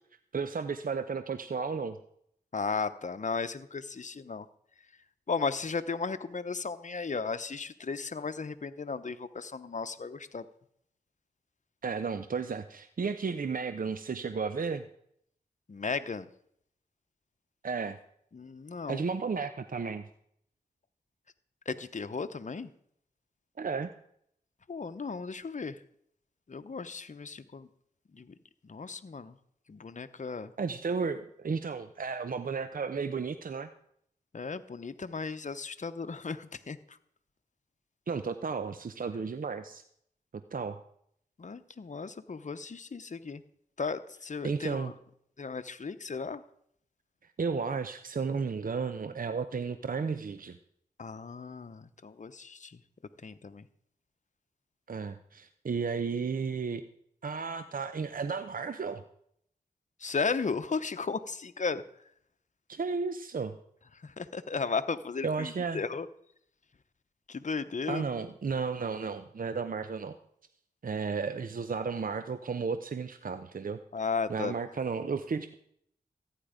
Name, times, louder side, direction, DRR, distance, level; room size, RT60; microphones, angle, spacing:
voice 1, 0.3-2.0 11.8-14.9 17.6-18.0 18.9-20.1 23.6-23.9 30.6-33.7 38.1-39.8 40.5-40.8 44.4-44.9 47.4-50.6 54.9-56.8 57.2-59.0 62.7-63.6 65.2-65.8 67.9-70.2 70.8-73.8 74.3-75.5, right 5 dB, 60° right, 10 dB, 0.7 m, -33 dB
voice 2, 2.5-4.5 5.3-10.4 15.7-16.3 18.3-19.1 21.7-22.7 24.7-25.8 26.5-27.7 28.1-28.3 28.6-29.3 29.7-30.5 34.3-36.8 41.4-43.4 43.8-44.9 45.4-46.4 51.0-52.8 53.2-53.6 60.0-61.8 64.0-66.1 67.3-68.0 73.9-74.5, left 4 dB, 50° left, 11 dB, 0.9 m, -35 dB
14.5 x 9.9 x 5.1 m, 0.69 s
cardioid pair, 45°, 16 cm